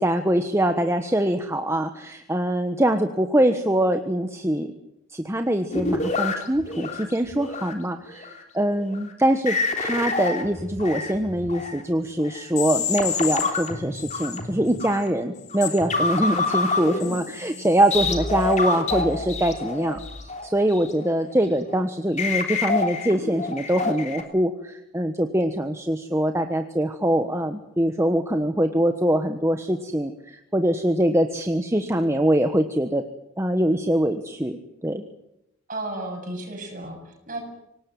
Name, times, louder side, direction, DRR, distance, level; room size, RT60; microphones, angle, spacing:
voice 1, 0.0-4.7 5.1-33.0 33.4-35.0, right 1 dB, 15° right, 6 dB, 1.2 m, -23 dB
sound 1, 5.7-7.7 8.1-8.4 8.8-9.1 9.5-11.8 12.2-15.1 15.5-21.3 21.7-21.8 22.2-24.2, left 3 dB, 35° left, 3.3 m, -27 dB
voice 2, 35.7-37.4, right 2 dB, 40° right, 2 dB, 7.7 m, -33 dB
25.5 x 19.0 x 9.1 m, 0.84 s
head